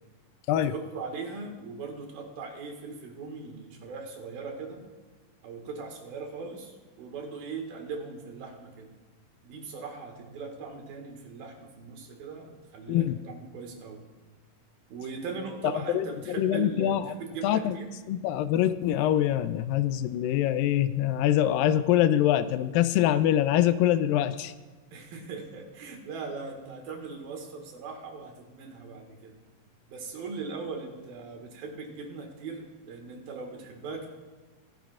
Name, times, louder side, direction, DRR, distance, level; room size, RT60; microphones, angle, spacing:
voice 1, 0.5-4.8 5.4-8.9 9.4-14.0 14.9-17.9 24.9-29.4 29.9-34.1, right 4 dB, 90° right, 2 dB, 3.6 m, -39 dB
voice 2, 12.9-13.2 15.6-17.1 17.4-17.8 18.1-24.5, left 12 dB, 85° left, 13 dB, 2.3 m, -24 dB
25.0 x 10.5 x 2.5 m, 1.3 s
omnidirectional pair, 4.0 m